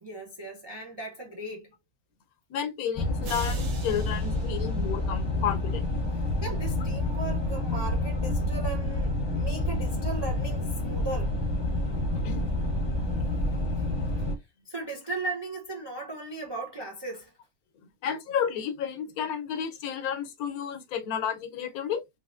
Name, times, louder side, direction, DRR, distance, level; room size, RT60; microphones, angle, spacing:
voice 1, 0.0-1.7 6.4-11.6 13.8-13.9 14.2-14.3 14.6-17.3, right 3 dB, 45° right, 0.3 m, -37 dB
voice 2, 2.5-5.9 12.2-12.5 18.0-22.0, left 8 dB, 85° left, 1.2 m, -31 dB
sound 1, 3.0-14.3, left 1 dB, 25° left, 0.7 m, -28 dB
sound 2, 3.2-5.6, right 5 dB, 80° right, 1.4 m, -45 dB
3.6 x 2.9 x 2.4 m
omnidirectional pair, 1.5 m